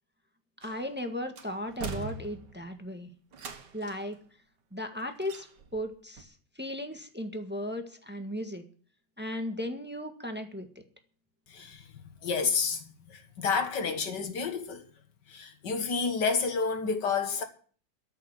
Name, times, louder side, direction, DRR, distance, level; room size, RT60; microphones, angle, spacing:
voice 1, 0.6-3.1 3.7-4.2 4.7-5.5 5.7-8.7 9.2-10.7, left 1 dB, 5° right, 1.6 m, -36 dB
sound 1, 0.6-1.0 1.4-2.7 3.3-4.1 5.2-5.9 6.2-6.3, right 5 dB, 80° right, 2.1 m, -41 dB
voice 2, 11.5-11.9 12.2-14.9 15.3-17.4, left 5 dB, 80° left, 2.3 m, -30 dB
14.0 x 6.6 x 10.0 m
omnidirectional pair, 1.8 m